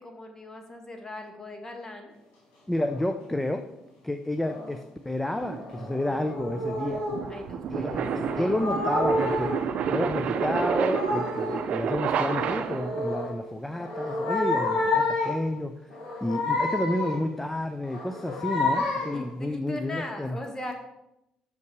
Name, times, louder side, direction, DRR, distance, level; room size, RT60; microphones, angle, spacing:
voice 1, 0.0-2.1 7.3-8.0 8.4-8.7 19.1-20.7, left 1 dB, 25° left, 4 dB, 1.7 m, -39 dB
voice 2, 2.7-3.6 4.0-7.0 7.7-15.9 16.2-20.4, left 1 dB, 10° left, 7 dB, 0.5 m, -30 dB
sound 1, 2.8-3.1 4.4-4.8 5.3-7.2 7.9-9.7 10.2-11.7 12.1-13.4 13.8-15.5 15.9-17.3 17.8-19.3, left 2 dB, 85° left, 2.6 m, -30 dB
earthquake finale, 5.5-13.1, right 7 dB, 65° right, 0.5 m, -30 dB
6.6 x 5.5 x 4.7 m, 0.87 s
cardioid pair, 80°, 2 cm